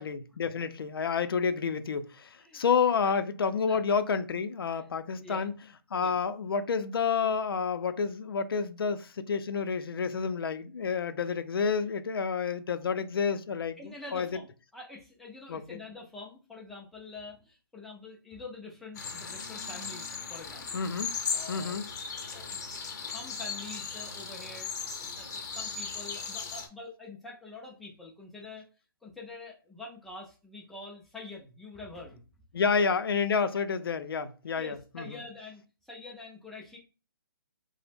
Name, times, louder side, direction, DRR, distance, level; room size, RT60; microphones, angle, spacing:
voice 1, 0.0-5.5 5.9-14.3 15.5-15.8 20.7-21.1 21.5-21.9 32.5-35.2, left 5 dB, 75° left, 0.4 m, -29 dB
voice 2, 13.8-20.8 21.3-21.8 22.3-22.5 22.7-24.7 25.0-28.7 29.0-32.2 34.5-36.8, left 3 dB, ahead, 0.3 m, -46 dB
sound 1, 18.9-26.7, left 5 dB, 45° left, 0.7 m, -37 dB
2.9 x 2.0 x 3.3 m
hypercardioid pair, 155°, 12 cm